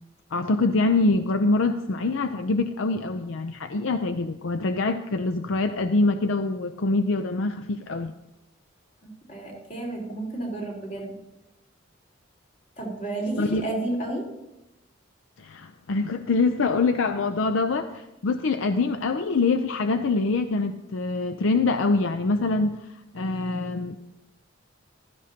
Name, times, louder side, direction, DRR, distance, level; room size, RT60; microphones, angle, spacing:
voice 1, 0.3-8.1 13.4-13.6 15.4-22.9 23.1-24.0, left 3 dB, 75° left, 8 dB, 0.5 m, -24 dB
voice 2, 9.0-11.1 12.8-14.2, right 2 dB, 45° left, -2 dB, 3.8 m, -31 dB
15.5 x 13.0 x 2.8 m, 0.93 s
head